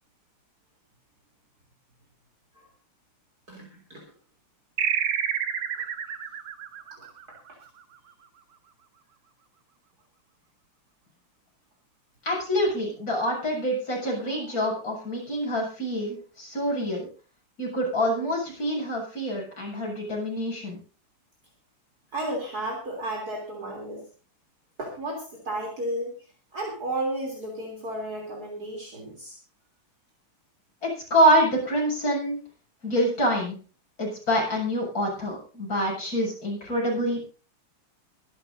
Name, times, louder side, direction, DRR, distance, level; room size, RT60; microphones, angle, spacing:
voice 1, 3.5-4.0 5.7-6.1 7.0-7.4 14.0-14.1 14.4-14.8 22.1-24.0 24.8-26.1 26.5-29.4, right 1 dB, 45° right, -1 dB, 3.9 m, -33 dB
sound 1, 4.8-7.8, right 8 dB, 80° right, 2.1 m, -29 dB
voice 2, 12.2-17.1 17.6-20.8 30.8-32.4 32.8-33.6 34.0-37.2, equal, 40° left, -3 dB, 8.6 m, -26 dB
24.5 x 12.0 x 2.7 m, 0.37 s
omnidirectional pair, 2.4 m